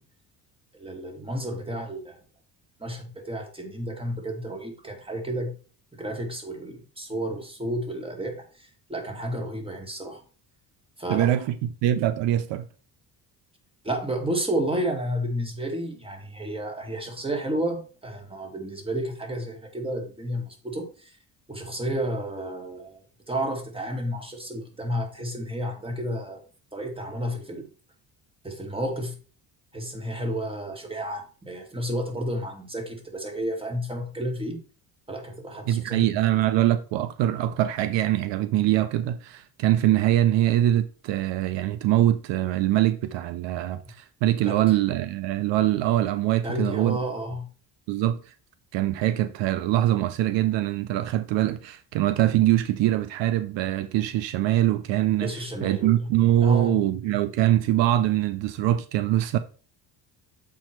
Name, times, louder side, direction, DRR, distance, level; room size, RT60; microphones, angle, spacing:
voice 1, 0.7-2.2 2.8-5.5 5.9-10.2 11.0-11.4 13.8-21.2 21.5-23.0 23.3-26.4 26.7-27.7 28.4-29.1 29.7-34.6 35.1-36.1 44.5-44.6 46.4-47.4 55.2-56.1 56.4-56.8, right 1 dB, 10° right, 2.2 m, -31 dB
voice 2, 11.1-11.6 11.8-12.7 35.7-47.0 47.9-48.3 48.7-55.3 55.6-59.4, right 13 dB, 75° right, 0.7 m, -23 dB
7.1 x 4.8 x 4.4 m
cardioid pair, 95°, 43 cm